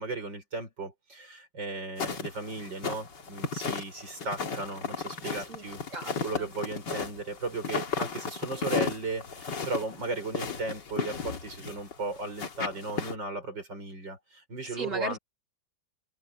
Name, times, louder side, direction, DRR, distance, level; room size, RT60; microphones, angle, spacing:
voice 1, 0.0-5.8 6.2-15.2, right 3 dB, 80° right, 7.1 m, -36 dB
sound 1, 2.0-13.1, left 5 dB, 75° left, 2.8 m, -34 dB
voice 2, 5.5-6.1 6.4-6.5 14.7-15.2, right 2 dB, 45° right, 3.2 m, -37 dB
omnidirectional pair, 1.9 m